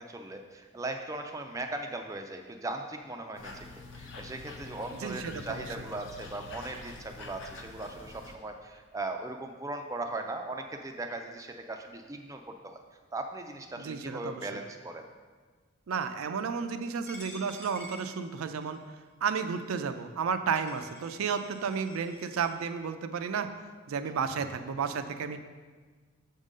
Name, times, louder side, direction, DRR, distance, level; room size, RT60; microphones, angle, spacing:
voice 1, 0.0-3.7 3.9-12.8 13.1-15.0, right 2 dB, 15° right, 5 dB, 0.3 m, -38 dB
sound 1, 3.3-8.4, left 3 dB, 65° left, 0.7 m, -46 dB
voice 2, 5.0-5.6 13.8-14.5 15.9-18.8 19.2-23.5 23.9-25.4, right 6 dB, 80° right, 9 dB, 0.4 m, -32 dB
Coin (dropping), 17.1-18.8 19.5-19.6 20.3-20.4 20.6-22.5, equal, 10° left, 0.9 m, -49 dB
7.2 x 3.7 x 5.1 m, 1.5 s
head